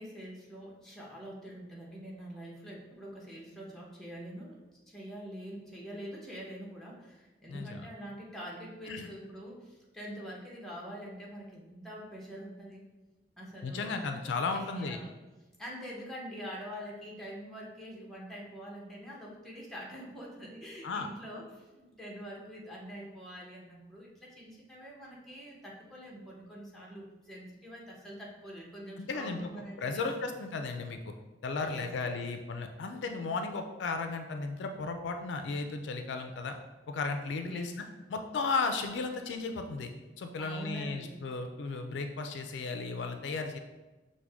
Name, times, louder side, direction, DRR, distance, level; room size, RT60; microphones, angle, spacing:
voice 1, 0.0-4.6 4.9-12.9 13.4-14.1 14.5-15.1 15.6-30.3 31.6-32.2 37.4-37.8 40.4-41.1, equal, ahead, -4 dB, 0.9 m, -45 dB
voice 2, 7.5-7.9 8.9-9.1 13.6-15.0 20.8-21.1 29.0-29.5 29.8-31.1 31.4-36.6 36.9-37.8 38.1-39.9 40.2-43.6, left 4 dB, 70° left, 6 dB, 0.4 m, -35 dB
6.1 x 2.2 x 3.4 m, 1.1 s
head